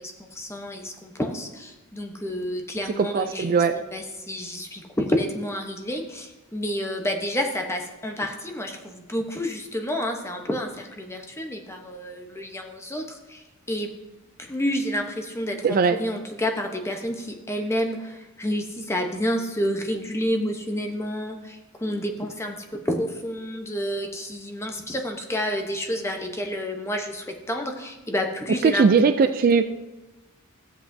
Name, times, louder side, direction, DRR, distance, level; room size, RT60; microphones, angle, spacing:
voice 1, 0.0-13.4 13.7-14.0 14.4-28.9 29.2-29.3, equal, 10° left, 3 dB, 0.9 m, -29 dB
voice 2, 3.0-3.7 15.6-16.0 28.6-29.6, right 5 dB, 40° right, 10 dB, 0.3 m, -19 dB
13.5 x 7.9 x 2.7 m, 1.1 s
head